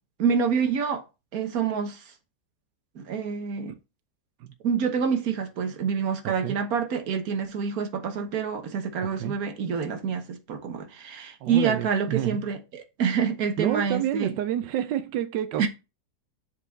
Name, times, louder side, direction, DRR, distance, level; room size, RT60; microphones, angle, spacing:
voice 1, 0.2-1.0 1.3-2.0 2.9-3.7 4.6-14.3 15.6-15.7, right 6 dB, 60° right, 1.5 m, -27 dB
voice 2, 6.2-6.6 9.0-9.4 11.4-12.5 13.6-15.7, right 11 dB, 90° right, 1.3 m, -29 dB
7.4 x 4.8 x 4.1 m
omnidirectional pair, 1.8 m